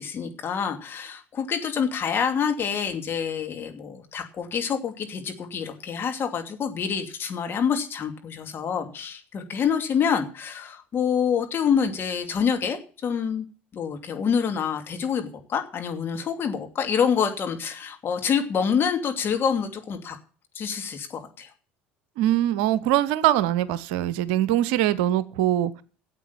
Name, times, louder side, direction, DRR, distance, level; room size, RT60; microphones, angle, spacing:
voice 1, 0.0-13.5 13.7-20.2 20.5-21.5, left 7 dB, 40° left, 2.7 m, -27 dB
voice 2, 22.2-25.8, right 13 dB, 70° right, 0.8 m, -22 dB
13.0 x 8.3 x 7.1 m
hypercardioid pair, 65°, 6 cm